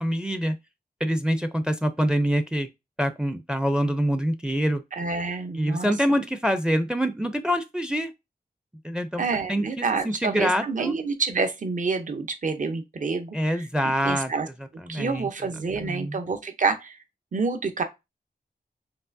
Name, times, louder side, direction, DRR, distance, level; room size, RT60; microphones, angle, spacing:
voice 1, 0.0-0.6 1.0-2.7 3.0-4.8 5.6-8.1 8.8-10.9 13.3-14.3 14.8-15.3 15.8-16.2, equal, 5° right, 0.4 m, -25 dB
voice 2, 4.9-5.9 9.2-13.7 14.0-14.5 14.9-17.0 17.3-17.8, right 4 dB, 55° right, 0.7 m, -28 dB
4.6 x 3.1 x 2.6 m
wide cardioid pair, 95°, 16 cm